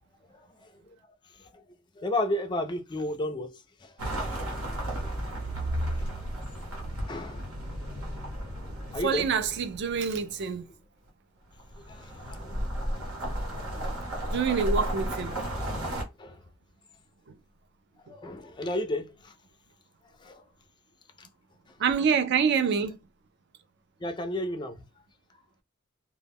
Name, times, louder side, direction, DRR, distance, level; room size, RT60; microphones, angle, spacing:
voice 1, 2.0-3.9 4.7-4.9 5.3-5.4 5.7-6.3 7.1-7.5 8.9-9.3 11.9-13.2 15.8-16.4 18.1-19.3 20.2-20.4 21.2-21.3 24.0-24.8, left 1 dB, 20° left, 0.3 m, -33 dB
sound 1, 4.0-10.5 11.6-16.0, right 1 dB, 90° right, 0.9 m, -33 dB
voice 2, 9.0-10.7 14.3-15.3 21.8-23.0, right 6 dB, 55° right, 0.3 m, -26 dB
2.1 x 2.1 x 3.4 m
head